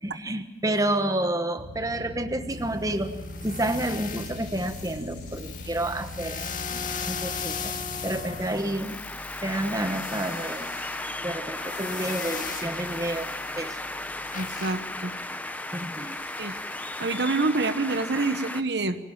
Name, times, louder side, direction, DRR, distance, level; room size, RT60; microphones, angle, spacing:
voice 1, 0.0-3.1 3.4-7.7 8.0-9.0 9.4-10.7 11.2-13.8 15.7-16.2, right 1 dB, 20° right, 8 dB, 1.2 m, -30 dB
sound 1, 1.6-8.4, left 1 dB, 75° left, 7.6 m, -40 dB
sound 2, 2.5-17.2, left 6 dB, 45° left, 2.0 m, -39 dB
sound 3, 7.9-18.6, left 2 dB, 10° left, 0.9 m, -35 dB
voice 2, 14.3-15.1 16.4-16.5 17.0-19.0, right 3 dB, 75° right, 10 dB, 1.3 m, -26 dB
24.5 x 18.0 x 7.3 m, 1.1 s
head